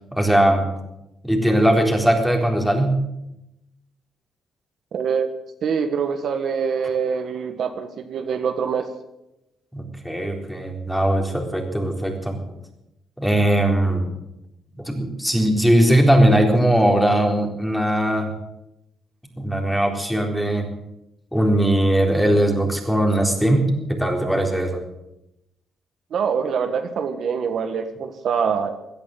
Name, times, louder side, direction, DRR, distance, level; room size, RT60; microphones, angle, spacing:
voice 1, 0.1-0.7 1.2-3.0 9.7-12.4 13.2-14.1 14.7-18.3 19.4-20.7 21.3-24.8, right 1 dB, ahead, 2 dB, 4.0 m, -19 dB
voice 2, 4.9-5.3 5.6-8.9 26.1-28.7, right 6 dB, 65° right, 7 dB, 1.5 m, -24 dB
16.5 x 11.0 x 7.7 m, 0.88 s
cardioid pair, 90°, 0 cm